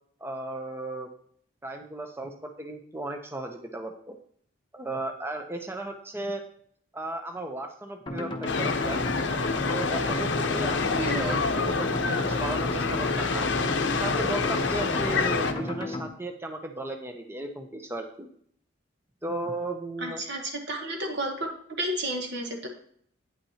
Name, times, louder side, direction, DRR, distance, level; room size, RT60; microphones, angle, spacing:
voice 1, 0.2-1.1 1.6-4.2 4.7-6.4 6.9-9.0 9.7-13.5 13.9-18.3 19.2-20.2, right 2 dB, 10° right, 5 dB, 0.6 m, -35 dB
sound 1, 8.1-16.1, left 2 dB, 25° left, 0.8 m, -33 dB
sound 2, 8.5-15.5, left 4 dB, 60° left, 0.7 m, -27 dB
voice 2, 11.0-11.4 20.0-21.5 21.8-22.7, right 1 dB, 55° right, 3 dB, 1.2 m, -31 dB
9.0 x 8.4 x 2.8 m, 0.63 s
head